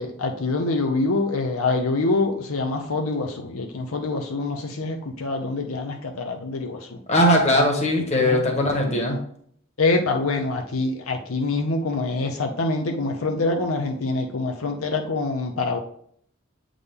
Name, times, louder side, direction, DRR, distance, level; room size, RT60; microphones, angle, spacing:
voice 1, 0.0-7.0 8.1-8.4 9.8-15.8, left 3 dB, 80° left, 3 dB, 0.7 m, -25 dB
voice 2, 7.1-9.2, left 1 dB, 30° left, 1 dB, 1.4 m, -19 dB
8.0 x 3.8 x 3.5 m, 0.63 s
head